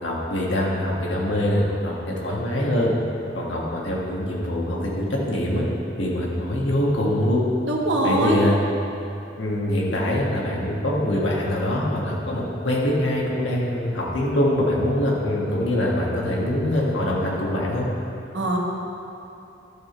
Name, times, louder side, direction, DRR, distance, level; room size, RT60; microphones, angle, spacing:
voice 1, 0.0-2.9 3.3-5.7 6.0-7.4 8.0-8.6 9.4-17.9, left 1 dB, 80° left, -4 dB, 1.7 m, -24 dB
voice 2, 7.7-8.4 18.3-18.6, right 1 dB, 75° right, -1 dB, 1.3 m, -22 dB
12.0 x 6.0 x 4.5 m, 2.8 s
head